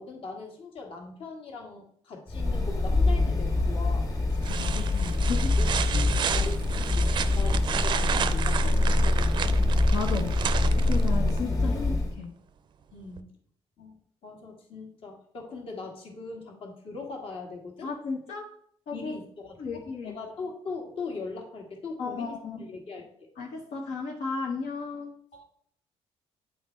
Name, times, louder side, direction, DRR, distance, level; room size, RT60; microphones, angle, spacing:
voice 1, 0.0-4.1 5.6-5.7 6.3-6.6 6.9-10.2 12.9-13.3 13.8-13.9 14.2-17.9 18.9-23.1 25.3-25.4, left 4 dB, 55° left, 1 dB, 1.6 m, -40 dB
sound 1, 2.3-12.1, left 2 dB, 30° left, 1.6 m, -25 dB
sound 2, 3.6-4.0 4.4-11.4 13.2-13.3, right 8 dB, 45° right, 0.4 m, -32 dB
voice 2, 4.6-5.5 9.9-10.4 10.7-12.4 17.8-18.4 18.9-19.2 19.6-20.2 22.0-22.6 23.4-25.1, left 4 dB, 80° left, 0 dB, 1.0 m, -34 dB
8.6 x 3.9 x 4.3 m, 0.62 s
cardioid pair, 160°, 11 cm